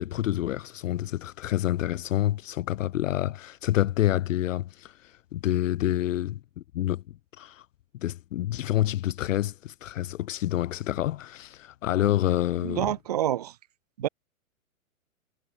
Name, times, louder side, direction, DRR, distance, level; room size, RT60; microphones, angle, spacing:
voice 1, 0.0-6.4 6.7-7.7 7.9-12.9, left 13 dB, 65° left, 0.6 m, -28 dB
voice 2, 12.6-13.5 14.0-14.1, right 12 dB, 30° right, 0.4 m, -27 dB
hypercardioid pair, 125°, 43 cm